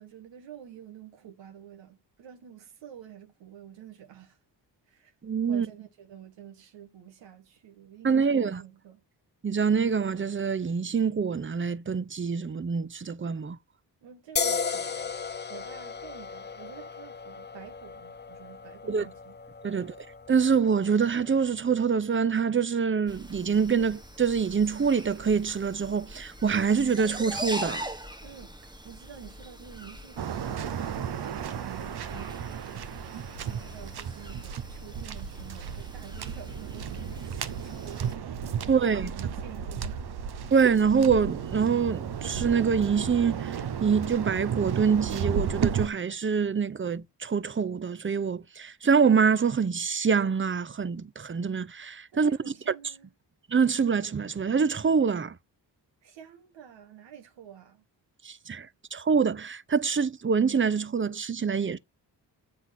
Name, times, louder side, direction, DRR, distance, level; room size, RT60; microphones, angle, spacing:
voice 1, 0.0-4.4 4.9-5.1 5.5-9.0 14.0-15.1 15.5-19.4 28.2-33.1 33.5-38.2 38.6-40.0 52.1-53.1 56.0-57.8, right 9 dB, 85° right, 1.7 m, -48 dB
voice 2, 5.2-5.7 8.0-8.6 9.4-13.6 18.9-19.1 19.6-19.9 20.3-27.9 38.7-39.1 40.5-52.3 53.5-55.4 58.2-61.8, right 6 dB, 30° right, 0.8 m, -25 dB
sound 1, 14.4-21.7, left 5 dB, 25° left, 0.6 m, -36 dB
sound 2, 23.1-38.1, right 1 dB, 10° right, 1.6 m, -42 dB
Waves surf, 30.2-45.9, right 8 dB, 60° right, 1.1 m, -33 dB
8.3 x 3.5 x 6.0 m
cardioid pair, 65°, 43 cm